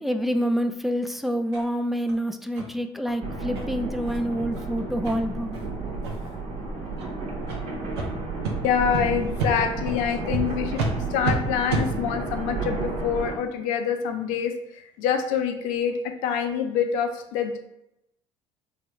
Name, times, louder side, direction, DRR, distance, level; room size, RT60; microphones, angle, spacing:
voice 1, 0.0-5.6, equal, ahead, 7 dB, 0.3 m, -27 dB
sound 1, 1.5-1.6 2.1-2.2 2.5-2.7 3.0-3.1 3.5-3.6 4.0-4.2 4.5-4.6 5.0-5.1 5.5-5.7 6.0-6.3 6.9-7.1 7.5-7.6 7.9-8.1 8.4-8.5 8.9-9.0 9.4-9.5 9.9-10.0 10.3-10.4 10.7-10.9 11.2-11.3 11.7-11.8, right 4 dB, 90° right, 0.5 m, -28 dB
sound 2, 3.2-13.4, right 3 dB, 55° right, 0.9 m, -32 dB
voice 2, 8.6-10.8 11.1-15.9 16.2-17.6, left 7 dB, 70° left, 5 dB, 0.5 m, -26 dB
3.2 x 2.2 x 3.0 m, 0.83 s
hypercardioid pair, 70°, 14 cm